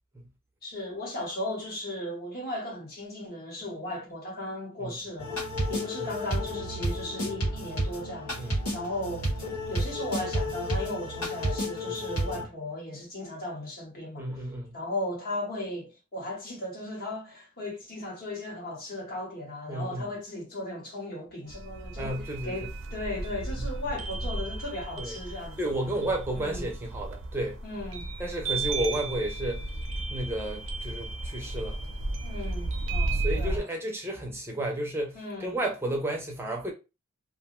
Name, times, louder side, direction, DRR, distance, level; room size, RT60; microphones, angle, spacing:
voice 1, 0.6-5.4 5.7-9.3 9.7-14.3 14.7-22.2 22.4-25.7 26.3-26.7 27.6-28.1 32.2-33.7 35.1-35.6, left 1 dB, 45° left, 1.1 m, -36 dB
sound 1, 5.2-12.4, equal, 85° left, 1.3 m, -31 dB
voice 2, 14.2-14.8 19.7-20.1 22.0-22.6 23.6-23.7 25.0-25.2 25.6-27.6 28.2-29.7 30.1-31.9 33.1-36.7, right 1 dB, 10° right, 0.5 m, -32 dB
sound 2, 21.5-33.6, right 2 dB, 60° right, 0.5 m, -34 dB
2.5 x 2.2 x 3.0 m
head